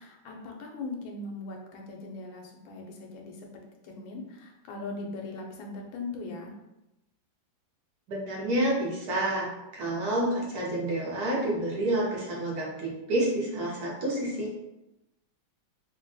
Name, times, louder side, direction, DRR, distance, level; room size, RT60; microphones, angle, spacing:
voice 1, 0.0-6.6, left 3 dB, 85° left, 1 dB, 1.4 m, -40 dB
voice 2, 8.1-9.5 9.7-14.5, right 1 dB, 60° right, -3 dB, 1.1 m, -29 dB
3.4 x 2.2 x 2.6 m, 0.90 s
omnidirectional pair, 2.1 m